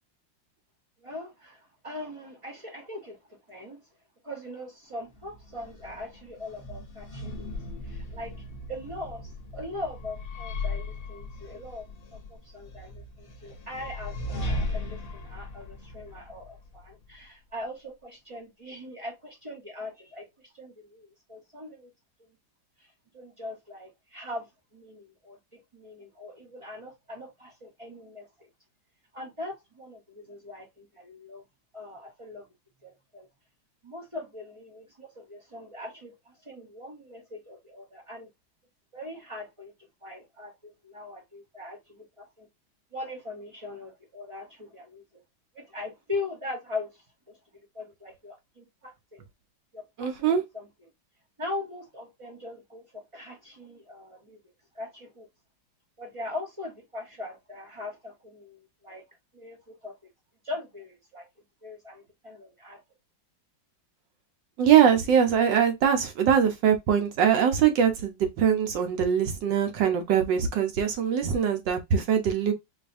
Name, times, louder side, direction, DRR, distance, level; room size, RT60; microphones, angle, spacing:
voice 1, 1.0-3.8 4.2-7.5 7.8-21.9 22.8-28.5 29.1-31.4 31.7-32.5 32.8-33.3 33.8-38.3 38.9-42.5 42.9-45.2 45.5-47.4 47.7-49.2 49.7-50.7 51.4-54.4 54.7-55.3 56.0-59.0 59.3-60.0 60.4-61.3 61.6-62.8, left 2 dB, 50° right, 0.4 m, -41 dB
sound 1, 5.1-17.2, left 2 dB, 45° left, 0.8 m, -37 dB
voice 2, 50.0-50.4 64.6-72.5, right 8 dB, 75° right, 1.4 m, -22 dB
4.8 x 2.7 x 2.5 m
omnidirectional pair, 2.0 m